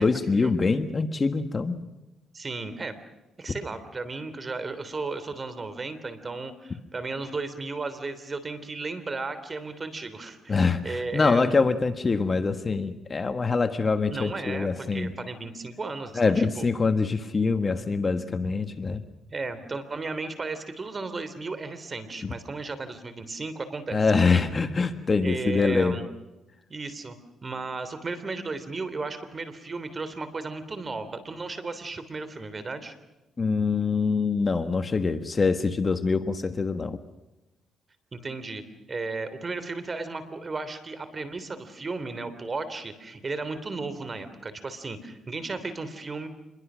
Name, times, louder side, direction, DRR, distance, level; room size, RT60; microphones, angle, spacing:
voice 1, 0.0-1.8 10.5-15.1 16.1-19.0 22.2-22.3 23.9-26.0 33.4-37.0, left 4 dB, 30° left, 9 dB, 1.5 m, -24 dB
voice 2, 2.3-2.9 3.4-11.5 14.1-16.7 19.3-24.4 25.2-26.0 26.7-27.2 27.4-32.9 38.1-38.6 38.9-46.3, right 3 dB, 30° right, 11 dB, 3.3 m, -35 dB
27.0 x 22.0 x 6.3 m, 1.0 s
cardioid pair, 90°, 0 cm